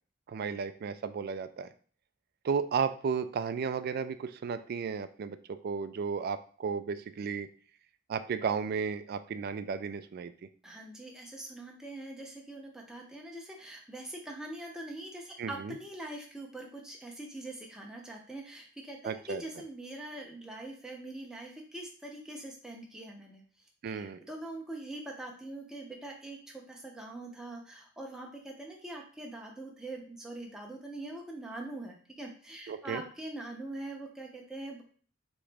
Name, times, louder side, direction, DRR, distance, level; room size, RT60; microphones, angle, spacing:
voice 1, 0.3-1.7 2.4-7.5 8.1-10.3 15.4-15.8 19.0-19.4 23.8-24.2 32.7-33.0, right 6 dB, 50° right, 12 dB, 0.3 m, -34 dB
voice 2, 10.6-23.4 23.9-34.9, right 1 dB, 5° right, -1 dB, 0.6 m, -43 dB
3.6 x 3.0 x 3.3 m, 0.43 s
head